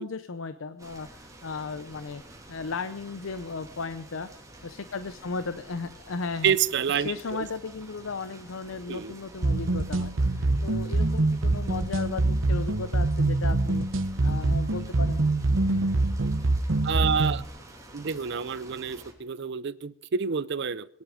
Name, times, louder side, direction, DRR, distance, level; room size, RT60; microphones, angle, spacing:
voice 1, 0.0-2.2 2.5-4.3 4.6-6.5 7.0-13.9 14.2-15.2 15.6-15.9, left 4 dB, 85° left, 12 dB, 0.7 m, -35 dB
sound 1, 0.8-19.1, right 1 dB, 15° right, 3.0 m, -49 dB
voice 2, 6.4-7.4 8.9-9.1 16.8-17.4 17.9-20.9, right 7 dB, 60° right, 17 dB, 0.6 m, -28 dB
sound 2, 9.4-17.4, right 2 dB, 75° right, 0.9 m, -25 dB
21.5 x 10.5 x 5.1 m, 0.73 s
head